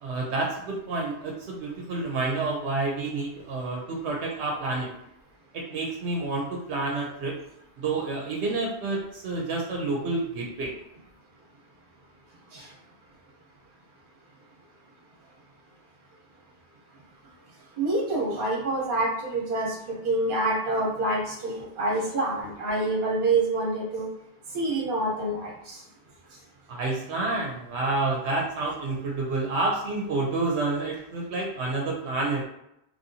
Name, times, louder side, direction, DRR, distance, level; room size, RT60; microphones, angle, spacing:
voice 1, 0.0-4.9 5.5-7.4 7.8-10.7 26.7-32.4, right 3 dB, 80° right, -1 dB, 0.9 m, -29 dB
voice 2, 17.8-24.1 24.5-25.8, right 2 dB, 55° right, -2 dB, 1.0 m, -27 dB
3.0 x 2.7 x 2.6 m, 0.81 s
omnidirectional pair, 1.1 m